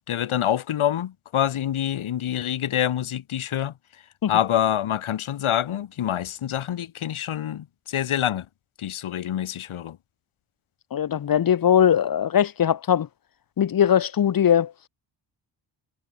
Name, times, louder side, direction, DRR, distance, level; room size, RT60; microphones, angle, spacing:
voice 1, 0.0-3.7 4.3-8.5 8.8-10.0, left 11 dB, 75° left, 4.0 m, -26 dB
voice 2, 10.9-13.1 13.6-14.7, left 9 dB, 45° left, 1.1 m, -20 dB
wide cardioid pair, 155°, 49 cm